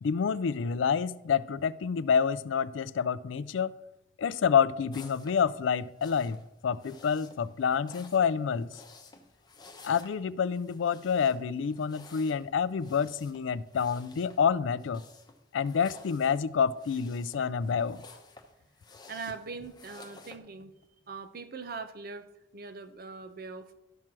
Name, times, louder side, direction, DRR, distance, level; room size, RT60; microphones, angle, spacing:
voice 1, 0.0-3.7 4.2-6.4 6.6-8.7 9.8-15.0 15.5-18.0, left 6 dB, 75° left, 18 dB, 0.4 m, -28 dB
sound 1, 4.9-20.4, left 3 dB, 20° left, 0.9 m, -54 dB
voice 2, 19.1-20.7 21.1-22.2 22.5-23.8, right 4 dB, 50° right, 10 dB, 0.7 m, -41 dB
12.5 x 4.5 x 6.0 m, 0.88 s
head